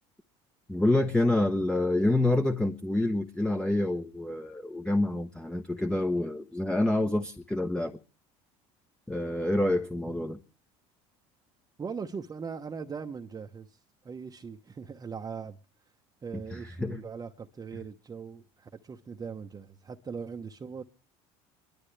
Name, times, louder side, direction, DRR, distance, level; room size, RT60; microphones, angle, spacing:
voice 1, 0.7-8.0 9.1-10.4 16.5-17.0, left 1 dB, 5° left, 1.0 m, -27 dB
voice 2, 11.8-15.6 16.2-20.8, right 5 dB, 25° right, 0.9 m, -40 dB
25.5 x 12.0 x 3.3 m
supercardioid pair, 95°, 14 cm